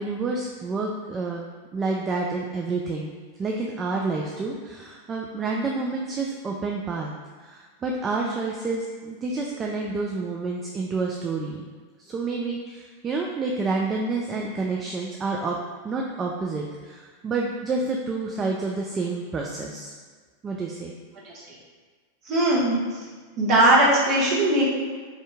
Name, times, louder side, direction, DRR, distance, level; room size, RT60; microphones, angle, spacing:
voice 1, 0.0-3.1 3.4-7.1 7.4-11.7 12.0-15.6 15.8-19.9 20.4-20.9, right 3 dB, 20° right, -1 dB, 0.3 m, -29 dB
voice 2, 22.2-23.0 23.4-24.6, right 1 dB, 40° right, -5 dB, 1.1 m, -20 dB
3.6 x 2.6 x 3.3 m, 1.5 s
figure-of-eight pair, 90°, 0 cm